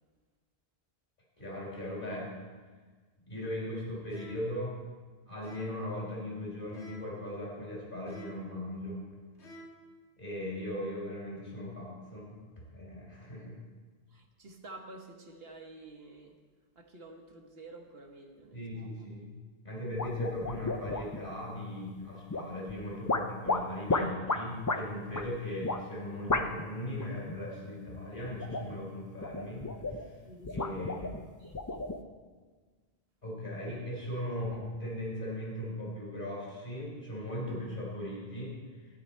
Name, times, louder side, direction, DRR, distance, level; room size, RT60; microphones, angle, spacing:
voice 1, 1.4-2.4 3.3-4.8 5.3-9.0 10.2-12.4 12.7-13.6 18.5-19.4 19.6-30.1 30.5-31.1 33.2-38.6, left 1 dB, 50° left, -4 dB, 4.1 m, -38 dB
sound 1, 4.1-4.6 5.4-5.9 6.7-7.2 8.1-8.6 9.4-9.9, equal, 85° left, 1.7 m, -51 dB
voice 2, 14.1-16.4 16.7-18.9 30.2-30.7 31.4-31.8, right 2 dB, 65° right, 3 dB, 1.3 m, -50 dB
sound 2, 20.0-21.3 22.3-22.7 23.1-24.8 25.1-25.3 25.6-25.8 26.3-26.7 27.0-27.4 28.2-28.8 29.2-30.1 30.4-32.0, left 3 dB, 25° left, 0.4 m, -33 dB
13.0 x 9.6 x 4.4 m, 1.4 s
omnidirectional pair, 1.1 m